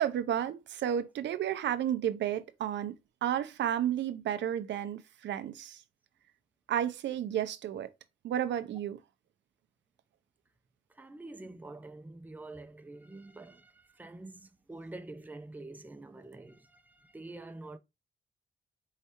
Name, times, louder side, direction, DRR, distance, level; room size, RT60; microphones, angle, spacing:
voice 1, 0.0-2.9 3.2-5.8 6.7-7.9 8.2-9.0, right 10 dB, 80° right, 0.6 m, -32 dB
voice 2, 10.9-17.8, right 2 dB, 10° right, 0.5 m, -47 dB
4.8 x 3.2 x 2.9 m
cardioid pair, 80°, 18 cm